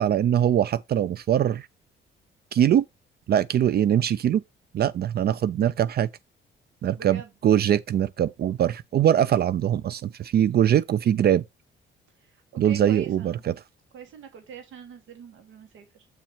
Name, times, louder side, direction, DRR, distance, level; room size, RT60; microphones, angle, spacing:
voice 1, 0.0-1.7 2.5-2.9 3.3-4.4 4.7-6.1 6.8-11.4 12.6-13.5, right 10 dB, 55° right, 0.4 m, -22 dB
voice 2, 6.9-7.3 12.1-13.4 13.9-16.1, right 7 dB, 80° right, 1.5 m, -43 dB
8.0 x 4.3 x 4.3 m
cardioid pair, 90°, 20 cm